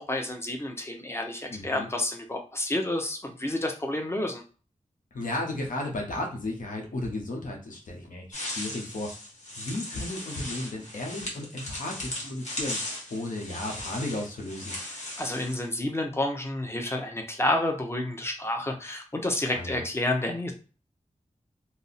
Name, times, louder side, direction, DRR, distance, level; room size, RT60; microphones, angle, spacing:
voice 1, 0.0-4.4 15.2-20.5, left 1 dB, 20° left, 3 dB, 0.7 m, -30 dB
voice 2, 1.5-1.9 5.1-9.1 9.6-12.8 13.1-14.7 19.5-19.8, left 2 dB, 85° left, 0 dB, 0.8 m, -34 dB
sound 1, 8.3-15.7, left 1 dB, 60° left, 1.1 m, -37 dB
2.5 x 2.0 x 3.9 m, 0.36 s
cardioid pair, 45°, 13 cm